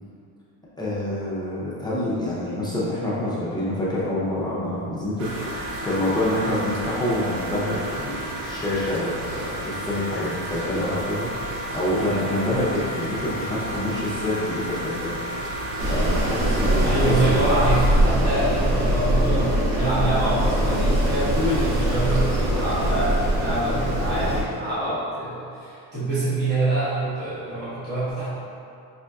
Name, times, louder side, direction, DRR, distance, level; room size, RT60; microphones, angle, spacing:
voice 1, 0.8-15.1 15.9-17.5 18.1-18.4, left 1 dB, 10° left, -9 dB, 0.5 m, -27 dB
sound 1, 5.2-17.9, right 1 dB, 55° right, 0.6 m, -32 dB
Wind, 15.8-24.4, right 1 dB, 75° right, 0.9 m, -22 dB
voice 2, 16.8-28.3, right 1 dB, 25° right, -12 dB, 1.0 m, -25 dB
5.2 x 2.5 x 2.2 m, 2.6 s
cardioid pair, 150°, 41 cm